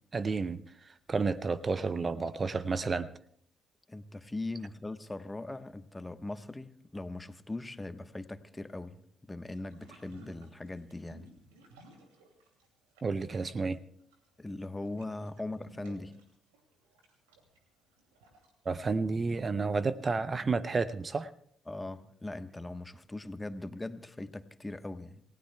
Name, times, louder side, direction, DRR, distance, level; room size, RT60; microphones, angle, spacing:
voice 1, 0.1-3.1 13.0-13.8 18.6-21.3, right 4 dB, 40° right, 15 dB, 0.6 m, -31 dB
voice 2, 3.9-11.3 14.4-16.1 21.7-25.2, left 2 dB, 20° left, 10 dB, 1.2 m, -40 dB
sound 1, 9.5-12.7 12.9-18.9, right 2 dB, 85° right, 2.5 m, -58 dB
28.5 x 17.0 x 2.3 m, 0.68 s
hypercardioid pair, 45°, 0 cm